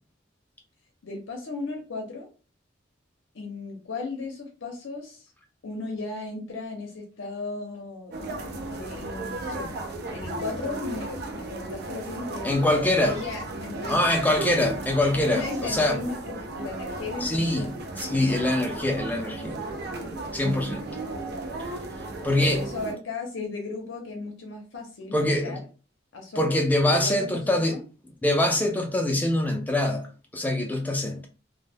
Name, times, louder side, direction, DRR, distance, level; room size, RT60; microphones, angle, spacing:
voice 1, 1.0-2.3 3.3-5.3 5.6-8.1 8.7-9.8 10.1-12.5 13.0-14.1 15.2-18.2 22.4-25.7 26.1-27.8, left 3 dB, 80° left, 0.6 m, -36 dB
sound 1, 8.1-22.9, right 2 dB, 55° right, 0.5 m, -35 dB
voice 2, 12.4-13.2 13.9-16.0 17.2-17.7 18.0-19.6 20.3-21.0 22.2-22.6 25.1-25.6 26.4-27.8 28.2-30.0 30.3-31.3, left 1 dB, 10° left, 0.4 m, -24 dB
2.1 x 2.1 x 3.3 m
head